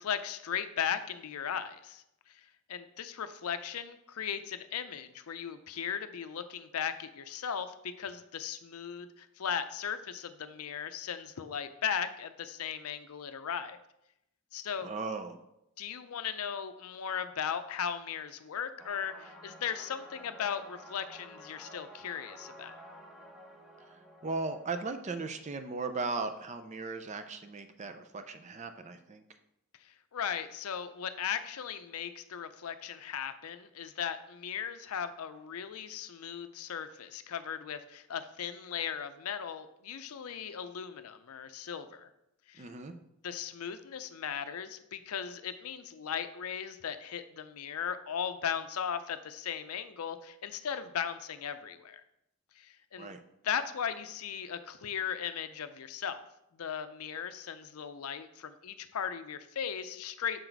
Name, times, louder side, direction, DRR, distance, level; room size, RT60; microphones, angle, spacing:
voice 1, 0.0-13.8 14.5-14.9 15.8-22.8 29.8-42.1 42.5-42.6 43.2-52.0 52.6-53.1 53.4-56.2 56.5-60.4, left 8 dB, 80° left, 11 dB, 0.5 m, -37 dB
voice 2, 14.8-15.4 23.8-29.2 42.6-42.9 53.0-53.2, right 3 dB, 30° right, 8 dB, 0.5 m, -37 dB
sound 1, 18.8-26.3, equal, 5° right, 0.8 m, -52 dB
6.5 x 4.0 x 4.5 m, 0.82 s
head